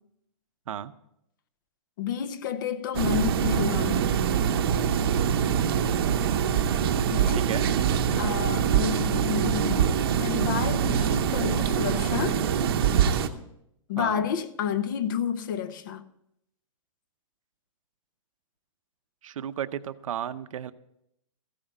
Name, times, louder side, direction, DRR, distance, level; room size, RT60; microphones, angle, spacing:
voice 1, 2.0-4.2 7.1-7.5 8.2-12.4 13.9-16.0, left 8 dB, 40° left, 0.6 m, -30 dB
sound 1, 2.9-13.3, right 8 dB, 45° right, 0.8 m, -24 dB
voice 2, 7.3-7.7 14.0-14.3 19.2-20.7, right 9 dB, 80° right, 0.7 m, -33 dB
14.5 x 8.8 x 5.4 m
hypercardioid pair, 175°, 17 cm